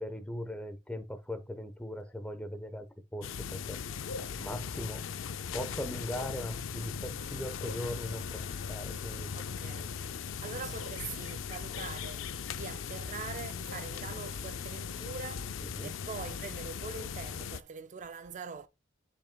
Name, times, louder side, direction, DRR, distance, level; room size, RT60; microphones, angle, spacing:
voice 1, 0.0-2.9 3.1-3.8 4.2-5.0 5.5-8.4 8.7-9.3 15.7-15.9, left 1 dB, 5° left, 1.0 m, -39 dB
sound 1, 3.2-17.6, left 6 dB, 85° left, 0.4 m, -39 dB
Bowed string instrument, 6.8-10.5, left 1 dB, 20° right, 2.7 m, -57 dB
voice 2, 9.3-18.7, right 5 dB, 40° right, 0.4 m, -43 dB
10.0 x 5.3 x 2.3 m
head